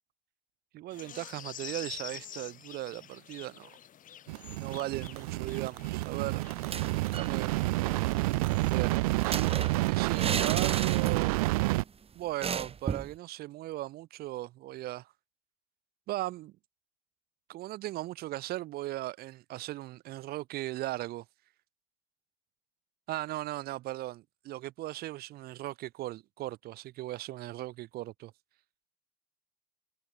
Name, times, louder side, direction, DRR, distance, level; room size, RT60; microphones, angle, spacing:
voice 1, 0.7-3.7 4.5-6.4 7.1-7.5 8.6-9.0 9.9-11.5 12.1-15.1 16.1-16.5 17.5-21.2 23.1-28.3, right 16 dB, 60° right, 2.4 m, -38 dB
sound 1, 0.9-9.6, left 10 dB, 45° left, 4.3 m, -48 dB
sound 2, 4.3-11.8, right 22 dB, 75° right, 1.9 m, -29 dB
sound 3, 6.6-7.4 7.7-7.8 8.0-11.5 11.8-11.9 12.4-13.2, right 6 dB, 30° right, 2.7 m, -35 dB
hypercardioid pair, 70°, 18 cm